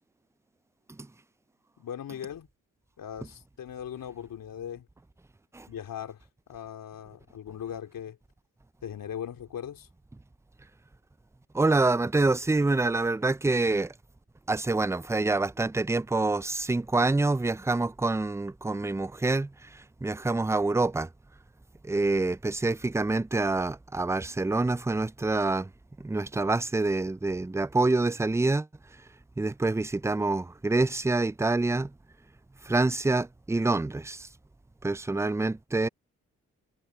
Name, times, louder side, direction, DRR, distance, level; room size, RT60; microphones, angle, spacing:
voice 1, 1.8-2.5 3.0-4.9 5.7-8.2 8.8-9.9, left 9 dB, 70° left, 3.3 m, -39 dB
voice 2, 11.5-13.9 14.5-21.1 21.8-25.7 26.0-28.7 29.4-31.9 32.6-34.3 34.8-35.9, right 2 dB, 10° right, 0.5 m, -26 dB
hypercardioid pair, 40°, 35 cm